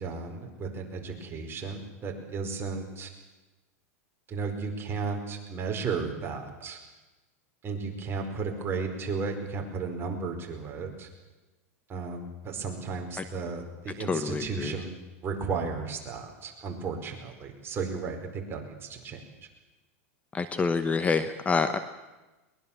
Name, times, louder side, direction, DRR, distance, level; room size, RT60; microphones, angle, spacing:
voice 1, 0.0-3.1 4.3-6.8 7.6-11.1 11.9-14.9 15.2-19.2, right 4 dB, 30° right, 2 dB, 4.8 m, -34 dB
voice 2, 14.1-14.7 20.3-21.8, left 4 dB, 15° left, 11 dB, 1.0 m, -27 dB
22.0 x 20.5 x 7.4 m, 1.1 s
supercardioid pair, 120°, 8 cm